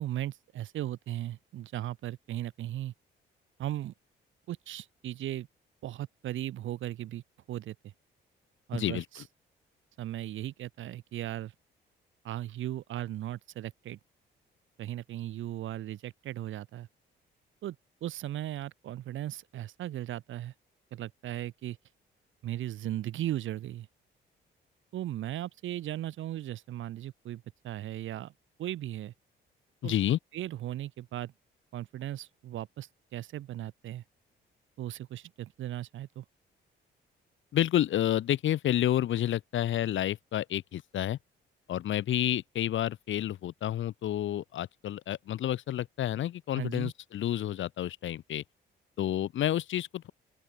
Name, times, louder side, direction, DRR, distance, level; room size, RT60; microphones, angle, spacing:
voice 1, 0.0-2.9 3.6-3.9 4.5-5.5 5.8-7.2 7.5-7.7 8.7-9.2 10.0-11.5 12.2-14.0 14.8-16.9 17.6-17.8 18.0-20.5 20.9-21.8 22.4-23.9 24.9-28.3 28.6-29.1 29.8-29.9 30.3-31.3 31.7-34.0 34.8-36.2 46.5-46.9, right 13 dB, 80° right, 3.2 m, -37 dB
voice 2, 8.7-9.0 29.8-30.2 37.5-41.2 41.7-48.4 49.0-50.1, left 12 dB, 75° left, 7.8 m, -29 dB
open air
cardioid pair, 90°, 20 cm